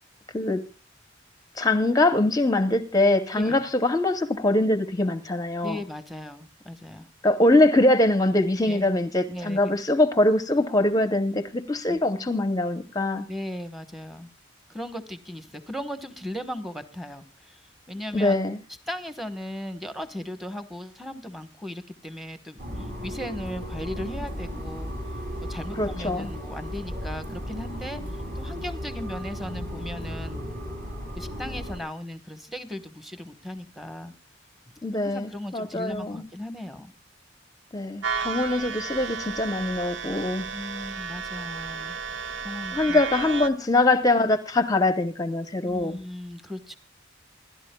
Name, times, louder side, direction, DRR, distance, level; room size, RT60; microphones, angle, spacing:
voice 1, 1.6-5.8 7.2-13.2 18.1-18.6 25.8-26.3 34.8-36.2 37.7-40.4 42.7-46.0, left 2 dB, 20° left, 10 dB, 0.8 m, -23 dB
voice 2, 5.6-7.1 8.7-8.9 9.3-9.8 11.9-12.0 13.3-14.3 14.7-17.6 17.9-18.4 18.9-24.9 25.5-30.4 31.2-34.1 35.0-36.9 40.5-42.0 42.4-43.0 45.6-46.8, left 1 dB, ahead, 10 dB, 1.2 m, -37 dB
sound 1, 22.6-31.8, equal, 45° right, 7.1 m, -35 dB
sound 2, 38.0-43.5, right 6 dB, 75° right, 1.0 m, -33 dB
27.5 x 12.0 x 2.2 m, 0.30 s
head